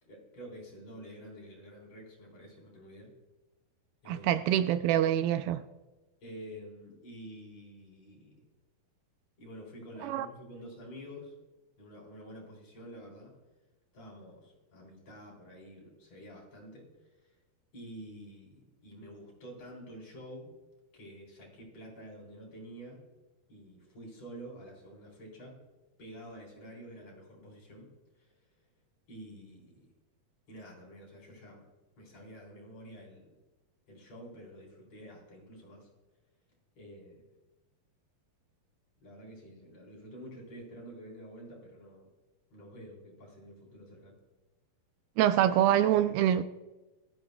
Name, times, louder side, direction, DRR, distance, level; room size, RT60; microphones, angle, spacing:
voice 1, 0.0-3.1 4.0-4.3 6.2-8.4 9.4-11.3 11.8-13.3 13.9-16.9 17.2-17.3 17.7-20.5 20.9-23.0 23.5-25.6 26.0-28.4 29.1-29.9 30.5-31.6 32.0-33.3 33.9-35.9 36.8-37.3 39.0-42.1 42.5-44.2, equal, 45° left, 5.3 m, -49 dB
voice 2, 4.1-5.6 10.0-10.3 45.2-46.4, right 11 dB, 85° right, 2.3 m, -25 dB
19.5 x 13.5 x 2.3 m
omnidirectional pair, 4.3 m